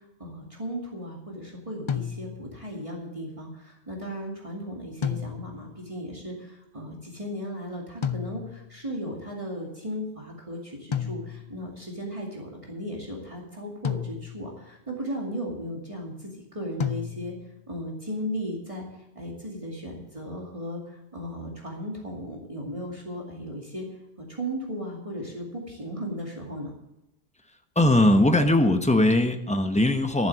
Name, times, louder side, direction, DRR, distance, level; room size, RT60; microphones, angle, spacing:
voice 1, 0.2-17.3 17.7-18.8 19.1-23.9 24.2-26.7, equal, 30° right, -2 dB, 2.4 m, -36 dB
sound 1, 1.9-2.6 5.0-5.8 8.0-8.8 10.9-11.7 13.8-14.6 16.8-17.6, left 8 dB, 40° left, 0.4 m, -32 dB
voice 2, 27.7-30.3, left 1 dB, 5° left, 6 dB, 0.9 m, -20 dB
13.0 x 7.5 x 7.6 m, 0.90 s
omnidirectional pair, 1.1 m